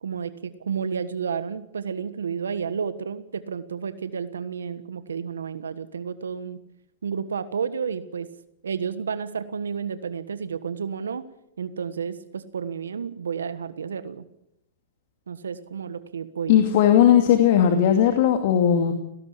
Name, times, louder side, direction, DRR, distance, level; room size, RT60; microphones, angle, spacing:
voice 1, 0.0-6.6 7.0-8.3 8.6-11.3 11.6-14.2 15.3-16.6, right 6 dB, 85° right, 13 dB, 1.4 m, -31 dB
voice 2, 16.5-18.9, left 9 dB, 55° left, 6 dB, 2.5 m, -17 dB
18.0 x 18.0 x 10.0 m, 0.81 s
hypercardioid pair, 120°, 0 cm